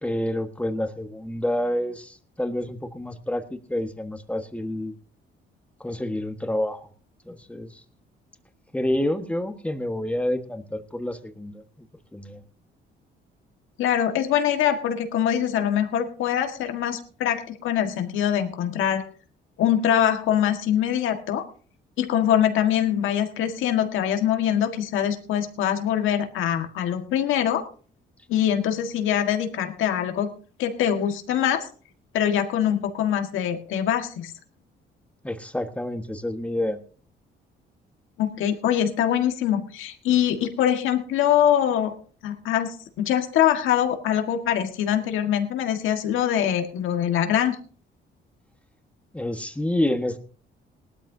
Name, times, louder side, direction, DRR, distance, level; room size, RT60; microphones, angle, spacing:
voice 1, 0.0-4.9 5.8-6.9 7.2-7.8 8.7-11.9 12.1-12.4 35.2-36.8 49.1-50.2, left 1 dB, 5° left, 7 dB, 1.5 m, -28 dB
voice 2, 13.8-19.0 19.6-21.4 22.0-27.6 28.3-30.3 30.6-31.7 32.1-34.3 38.2-41.9 42.2-47.6, left 10 dB, 85° left, 6 dB, 1.7 m, -23 dB
19.0 x 12.5 x 2.8 m, 0.40 s
cardioid pair, 90°, 20 cm